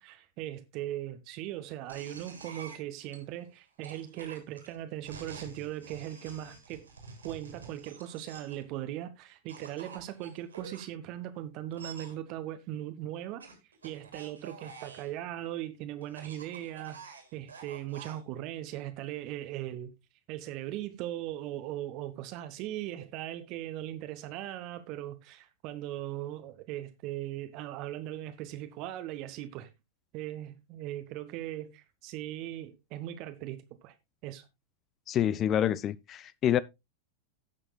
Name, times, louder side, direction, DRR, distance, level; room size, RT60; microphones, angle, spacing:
voice 1, 0.0-6.9 7.2-13.5 13.8-19.9 20.3-29.7 30.1-33.6 33.8-33.9 34.2-34.5, right 13 dB, 40° right, 1.0 m, -39 dB
sound 1, 1.9-3.2 3.8-8.6 9.5-10.9 11.7-12.1 13.4-15.1 16.0-18.2, right 4 dB, 75° right, 3.0 m, -48 dB
voice 2, 35.1-36.6, left 10 dB, 30° left, 0.4 m, -27 dB
17.0 x 6.4 x 2.3 m
figure-of-eight pair, 90°, 0 cm